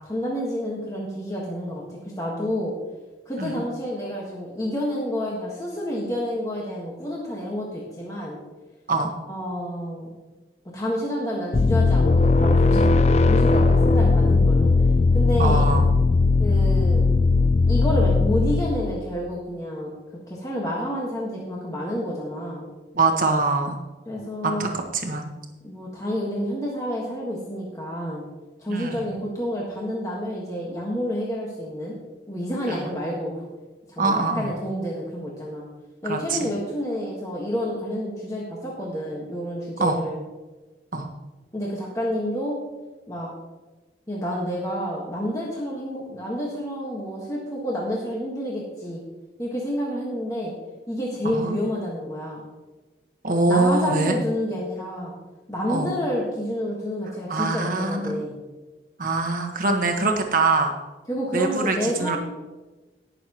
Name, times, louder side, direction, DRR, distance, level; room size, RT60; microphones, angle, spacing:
voice 1, 0.1-2.7 3.2-8.4 9.3-10.1 10.7-13.0 13.3-14.7 15.1-15.7 16.4-17.1 17.7-19.9 20.3-22.7 24.1-24.7 25.6-28.2 28.6-31.9 32.3-33.5 33.9-35.7 36.0-40.2 41.5-42.6 43.1-43.3 44.1-49.0 49.4-50.5 50.9-52.4 53.5-55.1 55.5-58.4 61.1-62.2, equal, 20° left, -4 dB, 1.5 m, -29 dB
sound 1, 11.5-19.0, left 3 dB, 35° left, 0.4 m, -18 dB
voice 2, 15.4-15.9 22.9-23.8 24.4-25.3 28.7-29.1 32.7-32.9 34.0-34.5 36.0-36.5 39.8-40.0 40.9-41.1 51.3-51.6 53.2-54.1 55.7-55.9 57.3-58.2 59.0-60.7 61.3-62.2, right 3 dB, 45° right, 3 dB, 1.4 m, -23 dB
19.0 x 6.8 x 3.0 m, 1.2 s
head